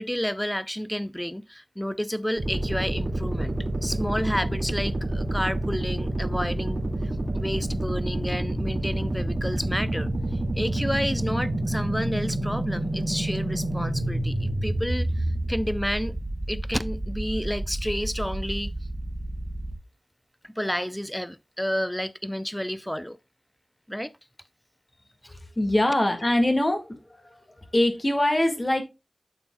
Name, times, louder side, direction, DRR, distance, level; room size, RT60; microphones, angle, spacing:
voice 1, 0.0-3.5 3.8-6.8 7.3-10.1 10.5-16.2 16.5-18.7 20.4-23.2 23.9-24.1 25.2-25.4, equal, 5° left, 0.5 m, -30 dB
sound 1, 2.4-19.7, right 1 dB, 90° right, 2.2 m, -28 dB
voice 2, 25.5-28.8, left 1 dB, 35° left, 1.8 m, -23 dB
8.7 x 7.0 x 2.2 m
wide cardioid pair, 55°, 0 cm